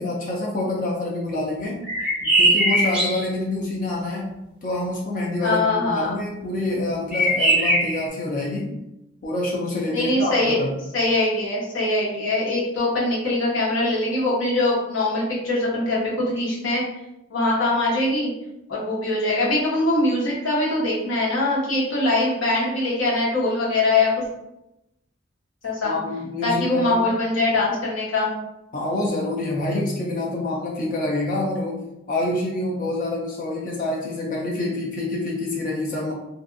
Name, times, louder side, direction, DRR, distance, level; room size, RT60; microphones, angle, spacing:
voice 1, 0.0-1.8 2.2-4.3 4.6-8.7 9.2-10.8 25.8-27.1 28.7-31.8 32.1-36.1, left 2 dB, 40° left, -2 dB, 0.4 m, -27 dB
sound 1, 1.8-3.3 7.1-8.1, right 1 dB, 5° right, 0.7 m, -20 dB
voice 2, 5.4-6.2 9.9-10.6 10.9-16.8 17.3-18.3 18.7-24.2 25.6-25.9 26.4-28.3, left 2 dB, 80° left, -6 dB, 1.1 m, -22 dB
2.5 x 2.4 x 2.5 m, 0.89 s
head